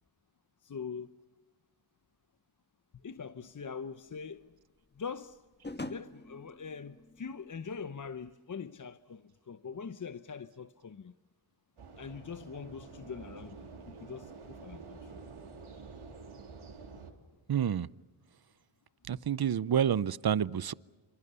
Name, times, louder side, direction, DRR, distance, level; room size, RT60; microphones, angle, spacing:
voice 1, 0.6-1.1 3.0-4.5 5.0-5.4 5.9-11.1 12.0-15.2, left 6 dB, 40° left, 0.8 m, -43 dB
sound 1, 3.6-8.3, left 2 dB, 20° left, 1.4 m, -47 dB
sound 2, 11.8-17.1, right 4 dB, 80° right, 3.5 m, -48 dB
voice 2, 17.5-17.9 19.1-20.7, right 8 dB, 50° right, 0.7 m, -29 dB
27.5 x 26.5 x 6.9 m
cardioid pair, 70°, 50 cm